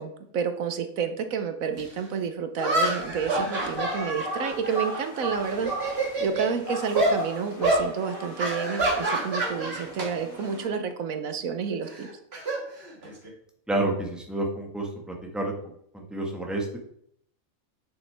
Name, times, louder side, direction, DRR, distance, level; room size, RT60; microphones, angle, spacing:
voice 1, 0.0-12.1, right 6 dB, 75° right, 8 dB, 1.2 m, -30 dB
sound 1, 1.8-1.9 2.6-5.2 5.6-6.5 6.9-7.2 7.6-7.9 8.4-10.1 10.4-10.7 11.9-13.3, right 2 dB, 45° right, 2.0 m, -27 dB
sound 2, 3.0-10.7, equal, 80° left, 2.5 m, -37 dB
voice 2, 13.7-15.5 15.9-16.8, right 2 dB, ahead, 0 dB, 1.4 m, -29 dB
8.5 x 6.9 x 3.4 m, 0.69 s
omnidirectional pair, 1.4 m